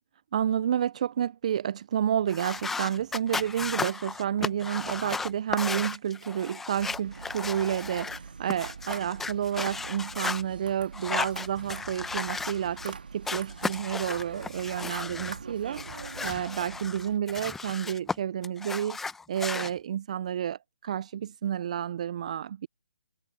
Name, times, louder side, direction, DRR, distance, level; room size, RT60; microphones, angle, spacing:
voice 1, 0.3-19.0 19.3-22.7, right 9 dB, 45° right, 0.4 m, -30 dB
sound 1, 2.3-8.2 8.5-10.4 10.9-12.9 13.2-15.4 15.7-18.1 18.4-19.7, left 4 dB, 5° left, 0.7 m, -35 dB
sound 2, 6.7-17.2, right 5 dB, 75° right, 1.8 m, -44 dB
hypercardioid pair, 150°, 5 cm